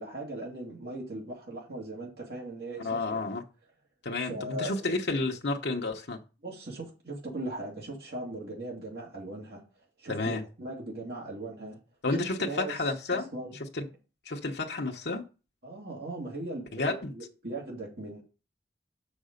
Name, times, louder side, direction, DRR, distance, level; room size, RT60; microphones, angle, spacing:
voice 1, 0.0-3.2 4.2-4.9 6.4-9.6 10.0-11.8 12.1-12.8 13.1-13.5 15.6-18.2, right 1 dB, 60° right, 2.2 m, -39 dB
voice 2, 2.8-3.4 4.0-6.2 10.1-10.4 12.0-13.2 13.7-13.9 14.3-15.2 16.7-17.1, left 3 dB, 70° left, 0.9 m, -31 dB
6.5 x 5.3 x 5.1 m
head